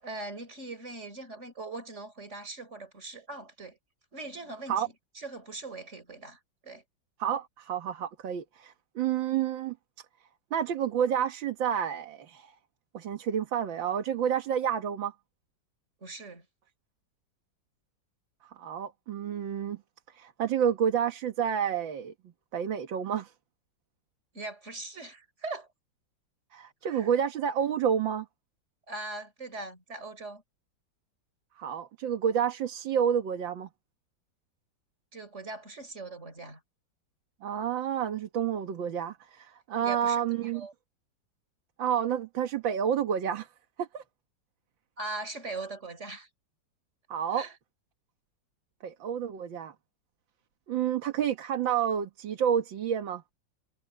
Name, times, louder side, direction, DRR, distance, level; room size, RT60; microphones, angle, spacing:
voice 1, 0.0-3.8 4.1-6.8 16.0-16.4 24.3-25.7 26.8-27.1 28.9-30.4 35.1-36.6 39.8-40.2 40.5-40.7 45.0-46.3 47.3-47.5, right 2 dB, 35° right, 4.7 m, -40 dB
voice 2, 7.2-9.8 10.5-12.5 12.9-15.1 18.6-19.8 20.1-22.1 22.5-23.3 26.5-28.3 31.6-33.7 37.4-40.7 41.8-43.5 43.8-44.0 47.1-47.5 48.8-49.7 50.7-53.2, right 8 dB, 90° right, 2.1 m, -29 dB
omnidirectional pair, 2.0 m